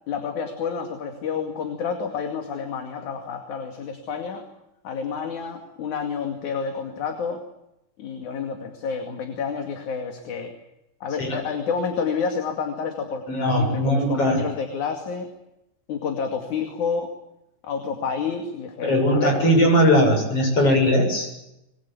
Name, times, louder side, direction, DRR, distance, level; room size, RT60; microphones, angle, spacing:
voice 1, 0.1-4.5 4.8-7.4 8.0-10.5 11.0-15.3 15.9-17.1 17.6-19.5, left 6 dB, 65° left, 5 dB, 3.7 m, -29 dB
voice 2, 13.3-14.4 18.8-21.3, equal, 45° left, 4 dB, 7.9 m, -19 dB
26.5 x 22.0 x 8.4 m, 0.89 s
omnidirectional pair, 3.8 m